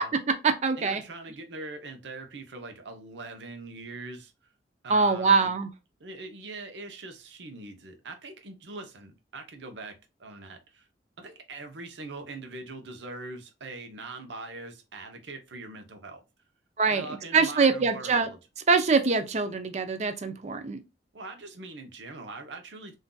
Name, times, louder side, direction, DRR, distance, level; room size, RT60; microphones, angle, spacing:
voice 1, 0.3-1.0 4.9-5.7 16.8-17.1 17.3-18.3 18.7-20.8, right 4 dB, 40° right, 0.5 m, -24 dB
voice 2, 0.8-4.3 4.8-5.5 6.0-10.9 11.2-16.2 16.9-18.4 21.1-23.0, right 2 dB, 90° right, 0.7 m, -42 dB
3.7 x 2.5 x 2.2 m
head